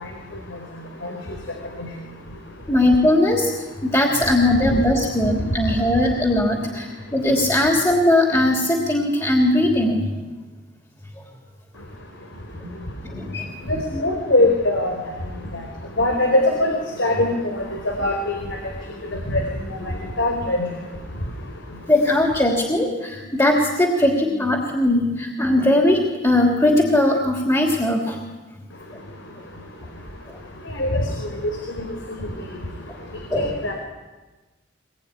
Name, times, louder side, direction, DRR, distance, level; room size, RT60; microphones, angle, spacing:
voice 1, 2.7-3.5 3.8-10.1 12.6-12.7 13.1-13.5 21.9-28.2 33.3-33.5, left 1 dB, 15° left, 1 dB, 3.2 m, -19 dB
voice 2, 13.7-14.9 15.5-15.6 16.0-16.7 17.0-17.5 18.0-18.3 19.3-19.4 20.2-20.7 30.8-31.1 32.2-32.3 33.4-33.7, left 1 dB, 80° left, 3 dB, 4.3 m, -20 dB
24.5 x 21.0 x 10.0 m, 1.2 s
head